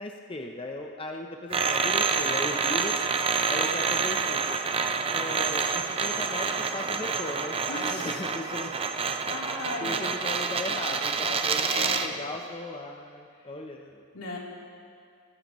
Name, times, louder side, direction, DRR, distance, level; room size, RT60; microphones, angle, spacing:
voice 1, 0.0-2.9 3.5-4.6 5.1-8.7 9.8-14.0, left 1 dB, 25° left, 2 dB, 0.6 m, -37 dB
sound 1, 1.5-12.1, right 5 dB, 25° right, 0.4 m, -28 dB
voice 2, 7.7-8.2 9.2-10.2 11.7-12.0 14.1-14.4, left 2 dB, 85° left, -4 dB, 3.2 m, -36 dB
20.5 x 15.0 x 3.0 m, 2.3 s
head